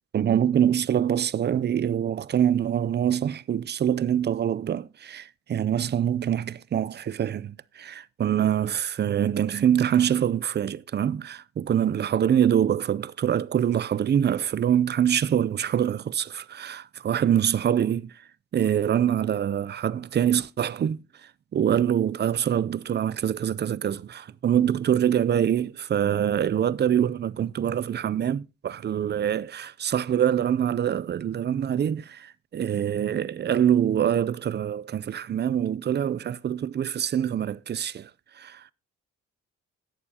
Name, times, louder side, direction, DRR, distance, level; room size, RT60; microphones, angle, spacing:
voice 1, 0.1-18.1 18.5-21.0 21.5-38.1 38.4-38.6, right 9 dB, 35° right, 0.5 m, -25 dB
18.5 x 6.9 x 2.8 m
cardioid pair, 90°, 30 cm